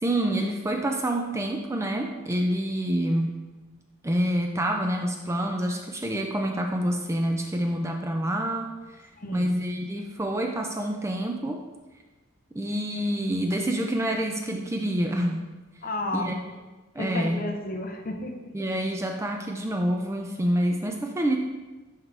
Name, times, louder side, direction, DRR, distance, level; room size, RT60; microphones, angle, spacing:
voice 1, 0.0-3.4 4.0-9.0 9.3-11.6 12.5-15.4 16.1-16.4 16.9-17.5 18.5-21.4, right 1 dB, 15° right, 3 dB, 0.4 m, -27 dB
voice 2, 9.1-9.5 15.8-16.3 17.0-18.5, left 1 dB, 40° left, 4 dB, 0.7 m, -32 dB
10.5 x 3.7 x 3.3 m, 1.2 s
head